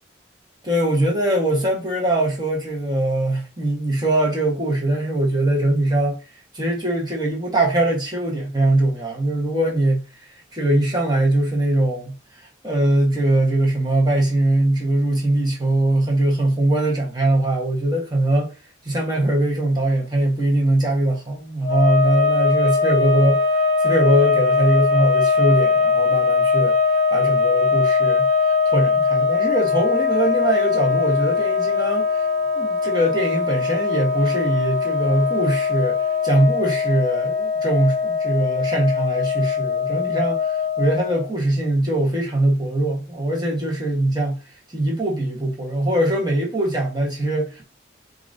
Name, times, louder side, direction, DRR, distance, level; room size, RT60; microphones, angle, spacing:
voice 1, 0.6-6.2 6.5-10.0 10.5-12.1 12.6-18.5 18.8-28.3 28.6-32.3 32.5-44.4 44.7-47.6, right 1 dB, 20° right, 1.3 m, -21 dB
sound 1, 21.6-41.3, left 5 dB, 50° left, 0.7 m, -21 dB
6.8 x 2.6 x 2.7 m
head